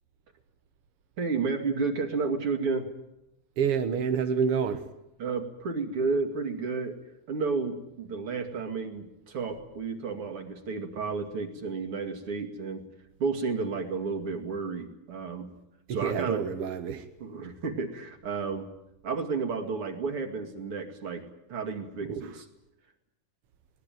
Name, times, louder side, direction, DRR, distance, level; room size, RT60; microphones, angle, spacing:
voice 1, 1.2-2.9 5.2-7.0 7.3-12.8 13.2-15.5 15.9-16.4 17.2-18.7 19.0-21.2 21.5-22.4, right 4 dB, 40° right, 5 dB, 3.1 m, -31 dB
voice 2, 3.6-4.9 15.9-17.1 22.0-22.4, right 6 dB, 60° right, 7 dB, 1.6 m, -28 dB
23.0 x 19.0 x 9.3 m, 0.87 s
omnidirectional pair, 4.0 m